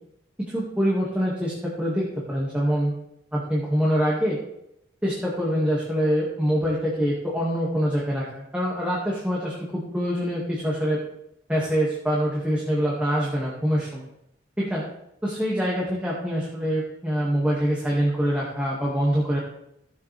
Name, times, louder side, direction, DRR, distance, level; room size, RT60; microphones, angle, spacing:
voice 1, 0.4-3.0 3.3-4.4 5.0-11.0 11.5-14.1 14.6-14.8 15.2-19.4, equal, 5° right, -5 dB, 2.2 m, -25 dB
17.0 x 7.3 x 3.5 m, 0.80 s
head